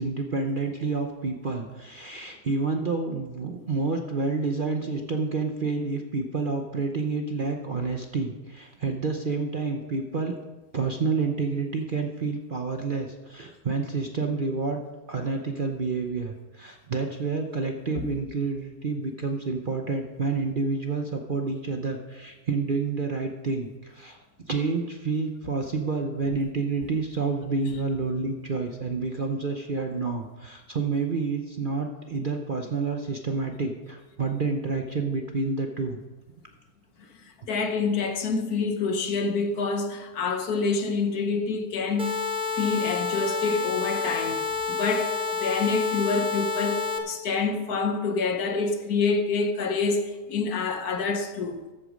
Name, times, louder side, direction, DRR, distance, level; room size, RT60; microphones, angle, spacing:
voice 1, 0.0-10.4 10.7-14.8 15.1-24.2 24.4-36.0, right 4 dB, 45° right, 0.7 m, -29 dB
voice 2, 37.4-42.2 42.5-51.6, left 4 dB, 70° left, 1.5 m, -27 dB
sound 1, 42.0-47.0, left 4 dB, 5° right, 0.9 m, -29 dB
13.5 x 8.2 x 5.1 m
omnidirectional pair, 1.7 m